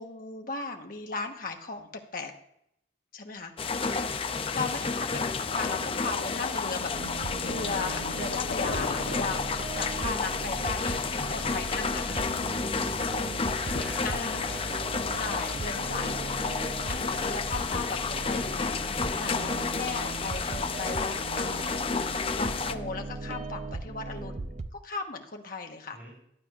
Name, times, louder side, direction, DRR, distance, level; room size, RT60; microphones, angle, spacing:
voice 1, 0.0-2.3 3.1-3.5 3.8-4.0 4.5-12.3 14.0-14.5 15.2-16.4 16.9-18.8 19.2-21.9 22.3-26.0, left 4 dB, 45° left, 4 dB, 1.1 m, -37 dB
sound 1, 3.6-22.8, left 4 dB, 30° left, 0.4 m, -31 dB
sound 2, 5.1-14.2, left 3 dB, 75° left, 0.8 m, -41 dB
sound 3, 6.9-24.7, right 2 dB, 35° right, 0.4 m, -38 dB
voice 2, 13.5-16.5 17.5-17.9 18.3-18.6 20.2-20.4 25.9-26.1, equal, 10° right, -5 dB, 3.5 m, -46 dB
15.0 x 10.5 x 2.4 m, 0.76 s
head